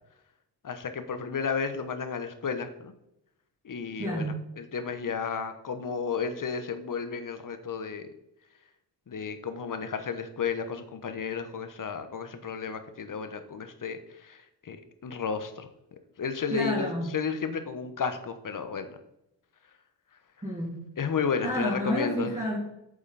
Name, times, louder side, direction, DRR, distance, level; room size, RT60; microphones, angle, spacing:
voice 1, 0.6-2.9 3.6-8.1 9.1-14.8 15.0-19.0 21.0-22.3, left 6 dB, 45° left, 9 dB, 1.2 m, -33 dB
voice 2, 4.0-4.3 16.5-17.1 20.4-20.8 21.4-22.6, equal, 15° right, -5 dB, 3.3 m, -29 dB
9.0 x 7.1 x 4.1 m, 0.83 s
cardioid pair, 65°, 43 cm